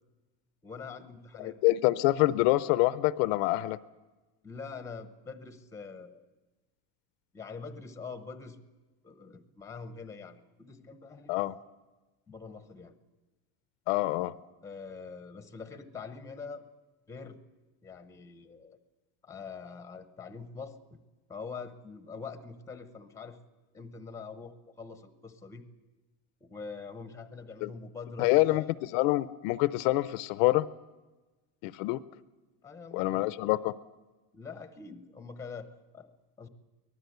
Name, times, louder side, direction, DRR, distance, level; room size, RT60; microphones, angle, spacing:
voice 1, 0.6-1.6 4.4-6.3 7.3-8.6 9.0-11.4 12.3-12.9 14.6-16.7 17.1-17.4 17.8-18.8 19.2-21.0 21.3-23.4 23.7-25.6 26.4-28.7 32.6-33.2 34.3-36.5, left 5 dB, 5° left, 11 dB, 0.8 m, -44 dB
voice 2, 1.4-3.8 11.3-11.5 13.9-14.3 27.6-27.7 28.2-28.6 28.9-30.7 31.6-32.0 32.9-33.7, left 18 dB, 60° left, 17 dB, 0.6 m, -26 dB
23.5 x 18.5 x 8.0 m, 1.2 s
cardioid pair, 175°, 46 cm